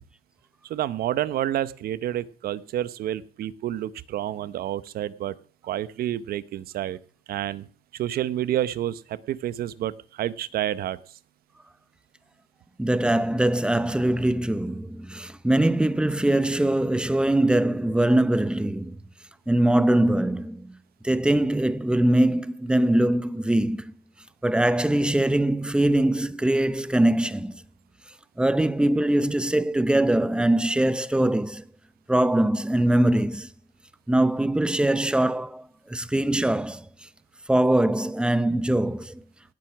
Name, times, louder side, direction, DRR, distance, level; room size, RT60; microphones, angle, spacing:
voice 1, 0.6-5.3 5.6-7.0 7.3-7.7 7.9-11.0, right 12 dB, 65° right, 0.9 m, -29 dB
voice 2, 12.8-19.0 19.5-20.8 21.0-23.9 24.4-27.6 28.4-31.6 32.1-33.5 34.1-36.8 37.5-39.2, right 1 dB, 5° right, 0.7 m, -22 dB
18.0 x 7.9 x 6.0 m
cardioid pair, 110°, 17 cm